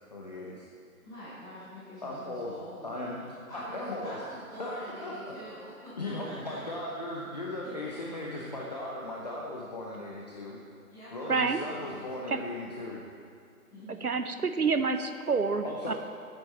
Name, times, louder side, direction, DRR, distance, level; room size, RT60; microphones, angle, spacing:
voice 1, 0.1-0.6 2.0-2.5 2.8-3.2 3.5-4.2 4.6-4.7 5.0-5.3 6.0-10.6 11.1-13.0 15.6-15.9, left 2 dB, 30° left, -4 dB, 0.9 m, -37 dB
voice 2, 1.0-2.9 3.5-6.6 7.6-8.4 10.9-12.4 13.7-14.4, equal, 5° left, -15 dB, 2.9 m, -46 dB
voice 3, 11.3-11.6 12.3-12.4 13.9-15.9, right 4 dB, 80° right, 9 dB, 1.0 m, -28 dB
15.0 x 9.0 x 4.3 m, 2.3 s
figure-of-eight pair, 150°, 44 cm